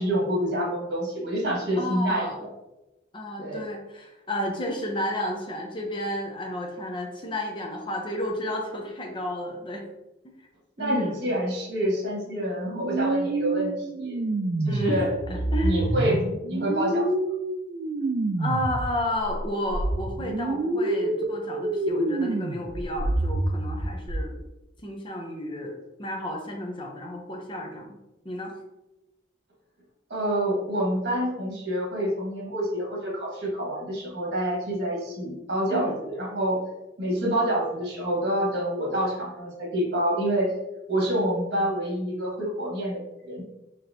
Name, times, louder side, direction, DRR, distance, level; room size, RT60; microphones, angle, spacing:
voice 1, 0.0-2.5 3.4-3.7 10.8-14.2 14.6-15.1 15.6-16.2 16.5-17.1 30.1-36.6 37.0-40.5 40.9-43.4, right 1 dB, 70° right, -2 dB, 1.4 m, -27 dB
voice 2, 1.8-2.5 3.1-9.8 10.8-11.2 14.7-15.9 18.4-24.4 24.8-28.0 28.2-28.5 35.7-35.9, left 1 dB, 30° left, 1 dB, 0.7 m, -32 dB
sound 1, 12.8-18.9 19.2-24.2, right 2 dB, 45° right, 0.4 m, -27 dB
4.1 x 3.1 x 2.7 m, 0.97 s
head